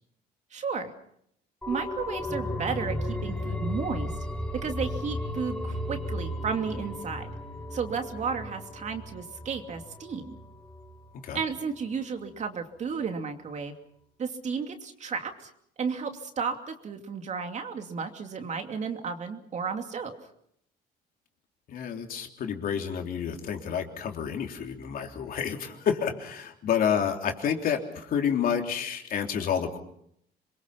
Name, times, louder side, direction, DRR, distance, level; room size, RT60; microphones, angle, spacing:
voice 1, 0.5-0.9 1.7-4.1 4.6-7.3 7.7-10.4 11.3-13.7 14.2-15.5 15.8-20.1, right 5 dB, 45° right, 5 dB, 2.7 m, -33 dB
sound 1, 1.6-11.0 11.3-11.4, left 1 dB, 5° left, 5.9 m, -35 dB
voice 2, 21.7-29.8, left 8 dB, 60° left, 3 dB, 3.5 m, -29 dB
27.0 x 22.5 x 5.9 m, 0.71 s
cardioid pair, 110°, 17 cm